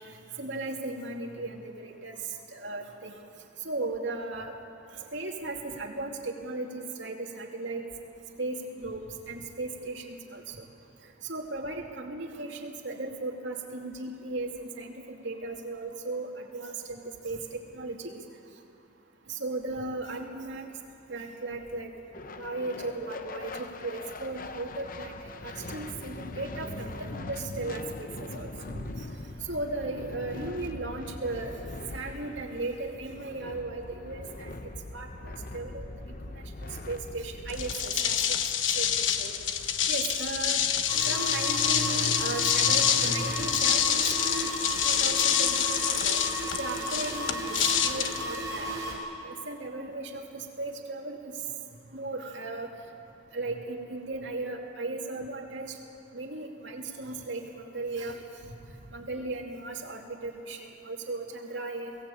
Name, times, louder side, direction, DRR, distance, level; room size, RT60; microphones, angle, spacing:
voice 1, 0.4-2.2 2.5-3.1 3.6-4.5 5.1-7.8 8.4-10.6 11.2-17.4 17.7-18.2 19.3-20.7 21.1-21.9 22.4-28.1 28.3-28.9 29.4-31.5 31.9-34.5 34.9-35.8 36.9-38.4 38.8-39.3 39.9-40.6 41.0-46.2 46.6-49.0 49.2-51.3 51.9-52.7 53.3-55.7 56.1-58.2 58.9-62.0, right 2 dB, 70° right, 1 dB, 2.7 m, -36 dB
sound 1, 22.1-37.8, left 2 dB, 45° left, 0.9 m, -41 dB
sound 2, 37.5-49.0, left 9 dB, 80° left, 1.1 m, -27 dB
sound 3, 40.9-48.9, equal, 15° right, 6.3 m, -34 dB
22.0 x 17.5 x 8.6 m, 2.7 s
head